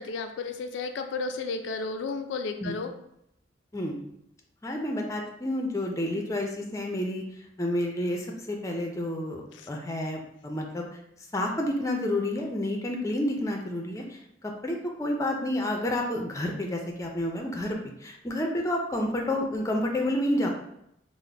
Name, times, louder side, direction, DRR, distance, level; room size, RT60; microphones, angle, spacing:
voice 1, 0.0-2.9 9.5-9.7, left 4 dB, 85° left, 7 dB, 0.3 m, -33 dB
voice 2, 4.6-7.2 7.6-10.9 11.3-20.5, left 1 dB, 15° left, 1 dB, 0.4 m, -30 dB
3.8 x 2.0 x 3.3 m, 0.78 s
head